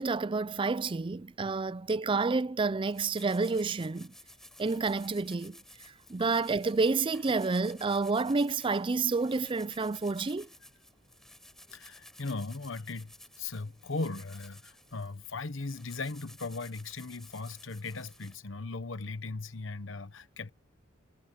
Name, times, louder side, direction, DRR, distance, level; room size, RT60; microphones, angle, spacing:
voice 1, 0.0-4.1 4.6-5.6 6.1-10.5, right 4 dB, 25° right, 0.4 m, -29 dB
sound 1, 2.9-18.3, left 1 dB, ahead, 6.2 m, -55 dB
voice 2, 11.7-20.5, left 3 dB, 65° left, 1.1 m, -38 dB
head